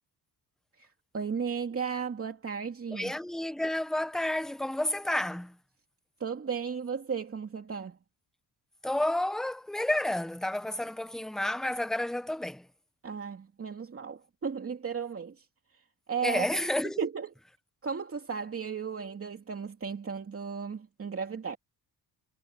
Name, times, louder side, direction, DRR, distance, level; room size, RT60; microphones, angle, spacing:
voice 1, 0.8-3.2 6.2-8.0 13.0-15.5 15.7-15.8 16.1-16.5 17.0-17.3 17.8-21.6, right 6 dB, 35° right, 2.7 m, -35 dB
voice 2, 2.9-5.5 8.8-12.6 16.2-17.0, left 1 dB, ahead, 0.9 m, -30 dB
cardioid pair, 135°, 41 cm